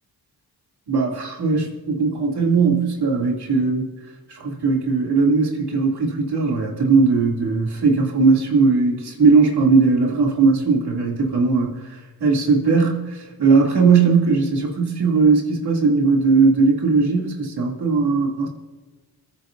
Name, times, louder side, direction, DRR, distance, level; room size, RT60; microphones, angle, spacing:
voice 1, 0.9-3.9 4.3-11.8 12.2-18.5, right 4 dB, 75° right, -1 dB, 2.8 m, -18 dB
28.0 x 10.0 x 2.6 m, 1.3 s
cardioid pair, 65°, 39 cm